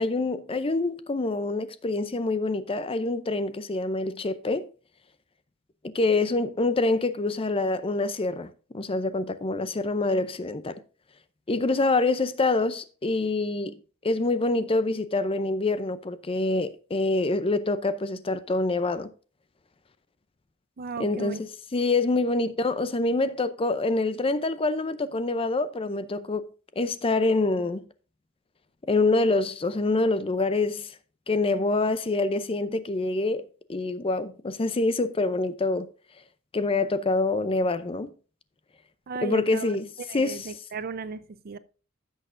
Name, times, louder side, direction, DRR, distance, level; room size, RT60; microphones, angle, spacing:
voice 1, 0.0-4.7 5.9-10.8 11.5-13.8 14.0-19.1 21.0-21.5 21.7-26.5 26.8-27.8 28.9-30.9 31.3-33.4 33.7-35.9 36.5-38.1 39.2-39.9 40.1-40.5, left 2 dB, 25° left, 0.5 m, -26 dB
voice 2, 20.8-21.4 39.1-39.7 40.1-41.6, right 5 dB, 45° right, 0.5 m, -36 dB
15.0 x 6.4 x 2.5 m
head